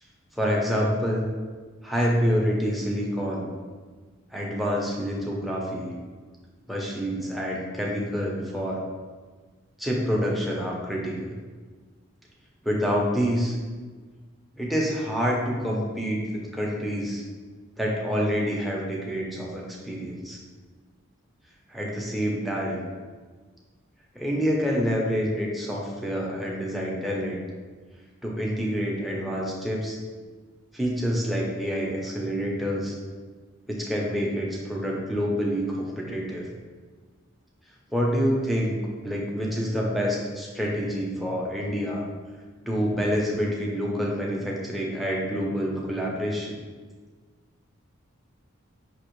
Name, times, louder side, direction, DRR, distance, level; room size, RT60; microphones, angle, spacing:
voice 1, 0.4-1.3 1.8-3.5 4.3-5.9 6.7-8.8 9.8-11.3 12.6-13.6 14.6-16.2 16.5-17.2 17.8-20.4 21.7-22.8 24.1-27.4 28.2-30.0 30.7-32.9 33.7-36.5 37.9-42.0 42.6-46.5, equal, ahead, -3 dB, 0.6 m, -27 dB
5.9 x 2.9 x 3.0 m, 1.5 s
head